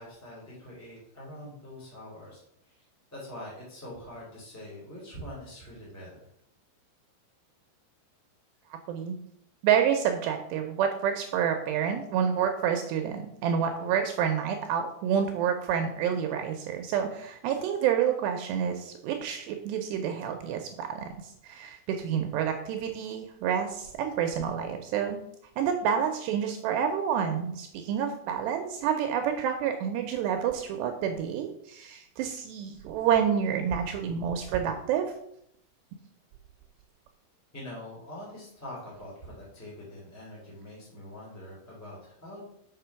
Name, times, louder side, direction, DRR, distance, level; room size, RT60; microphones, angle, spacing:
voice 1, 0.0-2.8 3.1-6.1 37.5-42.4, left 1 dB, 5° left, -6 dB, 1.8 m, -44 dB
voice 2, 9.6-25.2 25.6-35.1, right 8 dB, 80° right, 5 dB, 2.6 m, -28 dB
6.7 x 6.0 x 5.7 m, 0.74 s
omnidirectional pair, 5.4 m